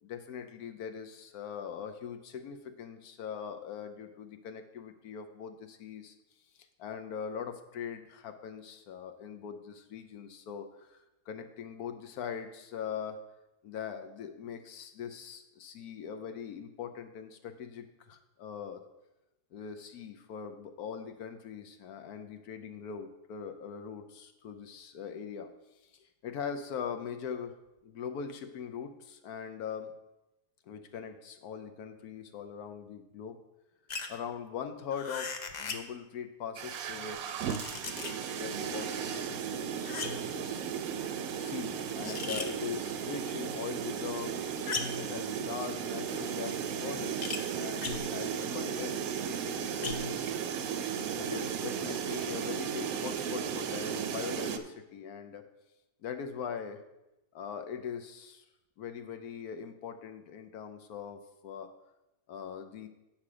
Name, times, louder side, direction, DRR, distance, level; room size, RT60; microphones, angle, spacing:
voice 1, 0.0-6.1 6.5-11.0 11.3-13.2 13.6-18.8 19.5-25.5 25.9-27.6 27.8-29.9 30.7-33.4 34.1-37.4 37.7-40.6 41.0-44.5 45.0-49.0 49.3-50.3 51.2-55.5 56.0-56.8 57.3-58.4 58.8-61.7 62.3-62.9, left 7 dB, 75° left, 7 dB, 1.1 m, -41 dB
sound 1, 33.9-34.2 34.9-35.9 37.2-38.3 39.8-40.3 42.0-42.6 44.7-45.1 47.2-47.5 47.8-48.2 49.8-50.2, left 5 dB, 55° left, 0.5 m, -37 dB
sound 2, 36.6-54.6, right 7 dB, 70° right, 1.0 m, -35 dB
8.6 x 5.8 x 4.9 m, 0.95 s
omnidirectional pair, 1.7 m